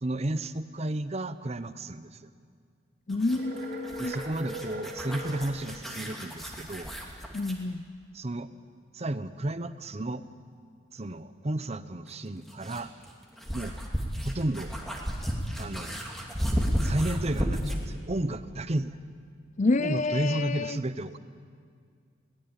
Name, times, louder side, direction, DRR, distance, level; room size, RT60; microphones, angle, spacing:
voice 1, 0.0-2.3 4.0-6.9 8.1-8.5 8.9-10.2 10.9-12.9 13.5-13.7 14.2-14.7 15.6-16.1 16.8-18.9 19.8-21.2, right 1 dB, 35° right, 12 dB, 0.8 m, -32 dB
voice 2, 3.1-4.2 7.3-7.9 19.6-20.8, left 3 dB, 40° left, 16 dB, 0.5 m, -28 dB
sound 1, 3.1-7.6 10.0-10.1 12.1-17.9, equal, ahead, 2.5 m, -33 dB
sound 2, 3.4-5.5, equal, 55° right, 3.4 m, -39 dB
22.0 x 18.0 x 8.8 m, 2.1 s
head